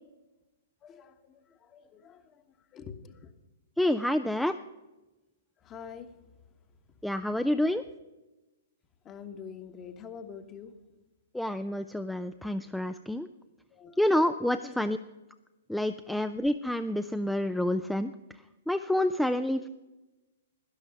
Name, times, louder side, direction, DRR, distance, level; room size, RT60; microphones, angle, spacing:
voice 1, 0.8-2.4 2.7-3.3 5.6-6.1 9.0-10.7 13.7-14.0 14.6-14.8, left 7 dB, 25° left, 9 dB, 1.1 m, -46 dB
voice 2, 3.8-4.6 7.0-7.8 11.3-13.3 14.0-15.0 15.7-18.1 18.7-19.7, left 1 dB, ahead, 10 dB, 0.3 m, -28 dB
12.0 x 10.5 x 5.7 m, 1.1 s
figure-of-eight pair, 115°, 0 cm